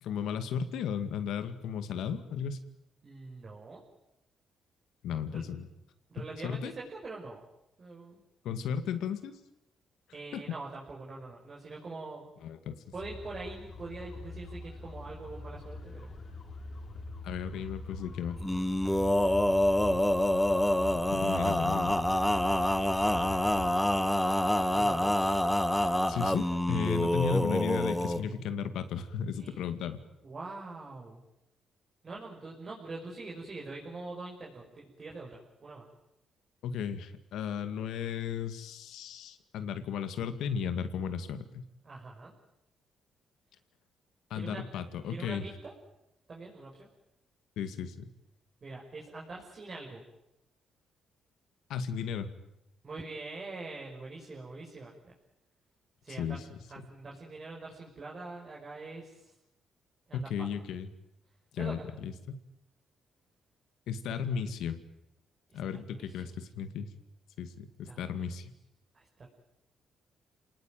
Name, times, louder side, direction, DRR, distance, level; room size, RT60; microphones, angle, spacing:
voice 1, 0.0-2.6 5.0-5.7 6.4-6.7 8.4-9.3 10.3-10.4 12.4-12.8 17.2-18.4 21.1-22.0 26.1-30.0 36.6-41.7 44.3-45.4 47.6-48.1 51.7-52.3 56.2-56.4 60.1-60.9 61.5-62.4 63.9-64.8 65.5-66.9 67.4-68.5, left 7 dB, 80° left, 10 dB, 2.1 m, -35 dB
voice 2, 3.0-3.8 5.3-5.4 6.1-7.4 7.8-8.2 10.1-12.3 12.9-16.2 24.7-25.2 29.3-29.7 30.2-31.2 32.0-35.8 41.8-42.3 44.3-44.6 45.0-45.7 46.3-46.9 48.6-50.0 52.8-55.1 56.0-56.4 56.7-59.3 60.1-60.5 61.6-61.8 65.5-66.3 67.8-68.3 68.9-69.3, right 3 dB, 40° right, -3 dB, 5.5 m, -44 dB
sound 1, 13.0-26.6, left 3 dB, 45° left, 4.2 m, -44 dB
Male singing, 18.4-28.2, left 1 dB, 5° left, 1.9 m, -27 dB
27.5 x 19.0 x 9.2 m, 0.88 s
cardioid pair, 90°, 0 cm